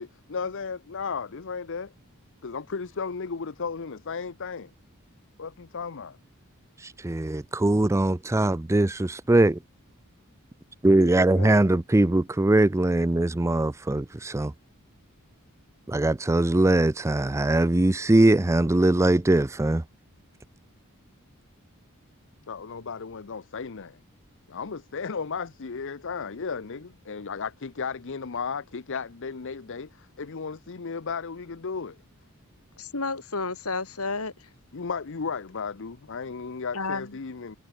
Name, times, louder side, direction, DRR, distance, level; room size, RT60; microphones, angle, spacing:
voice 1, 0.0-1.9 2.4-4.7 5.4-6.2 11.0-11.6 12.9-13.1 22.5-24.0 24.5-32.0 34.7-37.6, left 5 dB, 60° left, 0.8 m, -35 dB
voice 2, 7.0-9.6 10.8-14.5 15.9-19.8, right 2 dB, 15° right, 0.4 m, -21 dB
voice 3, 32.8-34.5 36.7-37.2, left 3 dB, 75° left, 3.6 m, -31 dB
head